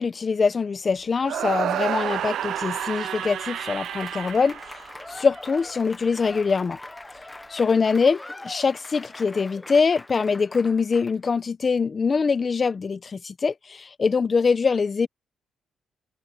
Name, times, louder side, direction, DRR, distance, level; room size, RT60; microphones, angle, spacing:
voice 1, 0.0-4.7 5.1-6.8 7.5-15.1, left 5 dB, 35° left, 1.2 m, -23 dB
sound 1, 1.2-5.4, right 10 dB, 70° right, 0.9 m, -30 dB
Applause / Crowd, 3.1-11.3, left 2 dB, 15° left, 1.4 m, -42 dB
cardioid pair, 90°, 0 cm